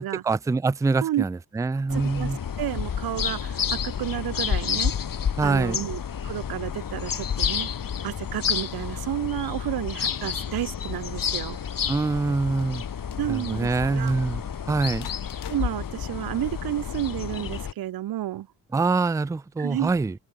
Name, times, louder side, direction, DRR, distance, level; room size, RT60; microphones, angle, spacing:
voice 1, 0.0-2.4 5.4-5.8 11.9-12.8 13.3-14.4 14.7-15.1 18.7-20.1, right 3 dB, 10° right, 0.4 m, -25 dB
sound 1, 1.9-17.7, left 8 dB, 55° left, 3.9 m, -30 dB
voice 2, 1.9-2.3 2.6-4.9 5.4-7.7 8.0-11.6 13.2-14.1 15.5-18.5 19.6-19.9, right 13 dB, 60° right, 1.0 m, -31 dB
sound 2, 11.3-16.2, left 11 dB, 70° left, 4.5 m, -49 dB
hypercardioid pair, 50°, 41 cm